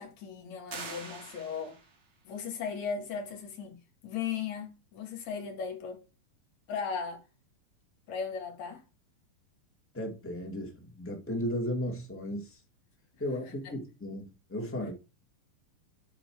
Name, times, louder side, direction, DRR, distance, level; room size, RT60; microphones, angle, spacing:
voice 1, 0.0-1.8 2.2-3.8 4.0-6.0 6.7-7.2 8.1-8.8 13.4-13.7, left 6 dB, 55° left, 2.9 m, -37 dB
sound 1, 0.7-2.1, right 4 dB, 45° right, 1.4 m, -44 dB
voice 2, 9.9-12.6 13.2-14.9, equal, 10° left, 0.6 m, -35 dB
9.7 x 4.5 x 4.8 m
omnidirectional pair, 4.3 m